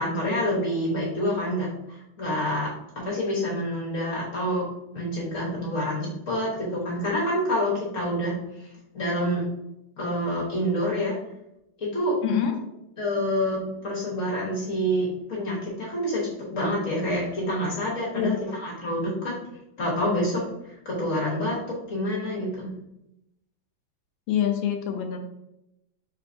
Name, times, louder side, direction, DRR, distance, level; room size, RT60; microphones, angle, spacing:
voice 1, 0.0-4.6 4.9-8.7 8.9-9.4 10.0-11.1 11.8-12.2 13.0-16.2 16.5-19.3 19.8-22.7, equal, 45° left, -5 dB, 1.2 m, -27 dB
voice 2, 12.2-12.5 18.1-18.6 24.3-25.2, left 8 dB, 80° left, 4 dB, 1.4 m, -25 dB
4.5 x 3.4 x 2.5 m, 0.84 s
omnidirectional pair, 2.2 m